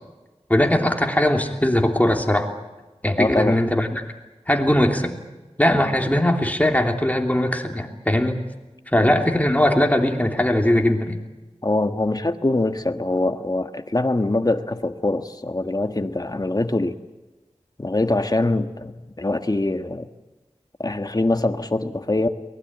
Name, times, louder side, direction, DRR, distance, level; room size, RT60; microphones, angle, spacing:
voice 1, 0.5-2.5 3.0-4.0 4.5-5.1 5.6-8.4 8.9-11.2, left 1 dB, 15° left, 3 dB, 3.1 m, -20 dB
voice 2, 3.2-3.6 9.0-9.1 11.6-17.0 17.8-20.1 20.8-22.3, left 2 dB, 35° left, 8 dB, 1.5 m, -23 dB
23.5 x 19.5 x 8.9 m, 1.1 s
wide cardioid pair, 60°, 11 cm